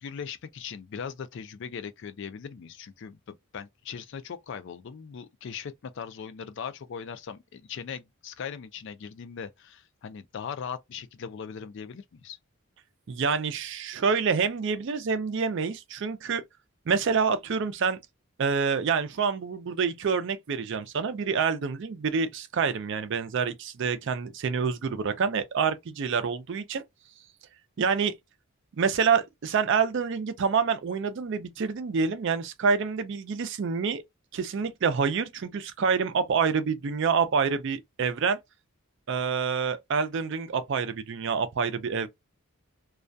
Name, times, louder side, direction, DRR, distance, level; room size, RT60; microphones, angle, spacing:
voice 1, 0.0-12.4, left 7 dB, 55° left, 0.3 m, -39 dB
voice 2, 13.1-16.4 16.9-18.0 18.4-26.8 27.8-28.1 28.8-34.0 34.3-38.4 39.1-42.1, right 5 dB, 55° right, 0.4 m, -27 dB
2.3 x 2.2 x 2.5 m
head